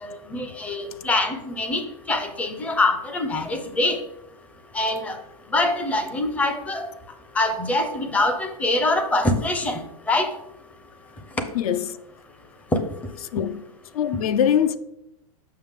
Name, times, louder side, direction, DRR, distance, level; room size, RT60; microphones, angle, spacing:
voice 1, 0.0-4.0 4.7-5.2 5.5-6.9 7.4-10.3, left 2 dB, 5° left, 0.5 m, -24 dB
voice 2, 11.5-11.9 13.3-13.6 13.9-14.8, left 9 dB, 70° left, 0.5 m, -22 dB
6.5 x 5.7 x 3.6 m
supercardioid pair, 155°, 19 cm